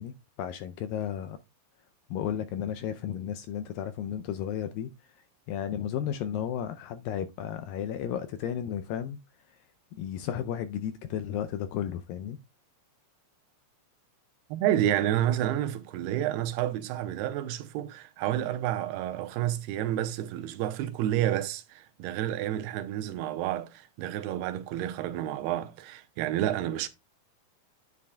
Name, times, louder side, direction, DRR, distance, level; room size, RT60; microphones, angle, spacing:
voice 1, 0.0-1.4 2.1-4.9 5.5-9.2 9.9-12.4, left 9 dB, 80° left, 2.1 m, -33 dB
voice 2, 14.5-26.9, right 12 dB, 85° right, 2.8 m, -30 dB
10.0 x 8.4 x 2.2 m
omnidirectional pair, 4.6 m